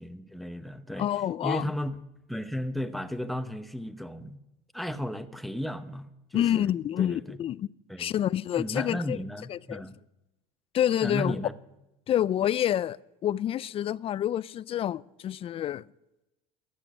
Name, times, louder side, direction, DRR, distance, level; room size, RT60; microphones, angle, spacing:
voice 1, 0.0-1.1 1.4-2.0 2.3-4.4 4.7-6.7 7.0-7.4 7.9-8.1 8.6-10.0 11.0-11.5, equal, ahead, 0.9 m, -34 dB
voice 2, 1.0-1.7 6.3-7.7 8.0-9.2 9.5-9.8 10.7-11.4 12.1-15.8, left 11 dB, 35° left, 0.4 m, -28 dB
14.5 x 10.0 x 6.2 m
supercardioid pair, 100°, 17 cm